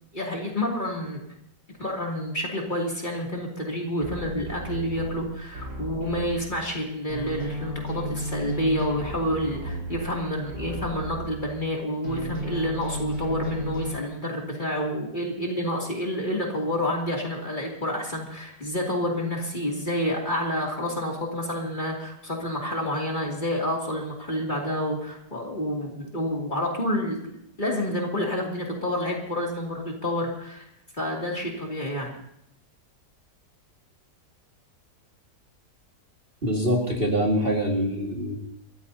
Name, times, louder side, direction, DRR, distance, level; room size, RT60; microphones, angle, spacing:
voice 1, 0.1-1.2 1.8-30.7 30.9-32.1, equal, 25° left, -2 dB, 2.8 m, -29 dB
sound 1, 4.0-6.8 7.1-11.7 12.0-13.9, right 1 dB, 75° right, 5.7 m, -34 dB
voice 2, 36.4-38.4, equal, 30° right, -1 dB, 2.2 m, -24 dB
28.5 x 14.5 x 2.8 m, 0.75 s
omnidirectional pair, 1.8 m